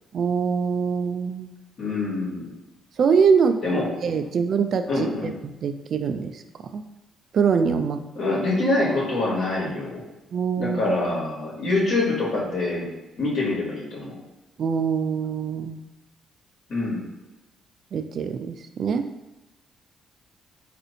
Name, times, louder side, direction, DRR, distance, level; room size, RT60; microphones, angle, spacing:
voice 1, 0.1-1.5 3.0-3.6 4.0-5.3 5.6-6.8 7.3-8.0 10.3-10.9 14.6-15.8 17.9-19.1, right 6 dB, 60° right, 8 dB, 0.3 m, -23 dB
voice 2, 1.8-2.4 3.6-3.8 4.9-5.3 8.2-10.0 10.6-12.9 13.2-14.2 16.7-17.0, left 2 dB, 65° left, -5 dB, 1.2 m, -25 dB
4.1 x 2.5 x 2.7 m, 1.0 s
cardioid pair, 90°, 0 cm